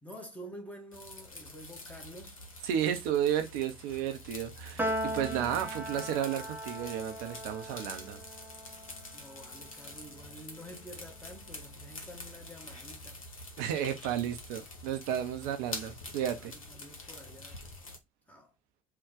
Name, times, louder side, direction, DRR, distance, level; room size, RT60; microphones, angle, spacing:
voice 1, 0.0-2.3 9.1-13.2 16.4-17.6 18.3-18.5, equal, 10° left, 1.2 m, -49 dB
sound 1, 0.9-18.0, left 2 dB, 80° left, 0.8 m, -46 dB
voice 2, 2.6-8.2 13.6-16.5, right 10 dB, 55° right, 0.6 m, -33 dB
Piano, 4.8-11.3, right 1 dB, 10° right, 0.7 m, -39 dB
3.6 x 2.3 x 3.6 m
figure-of-eight pair, 60°, 17 cm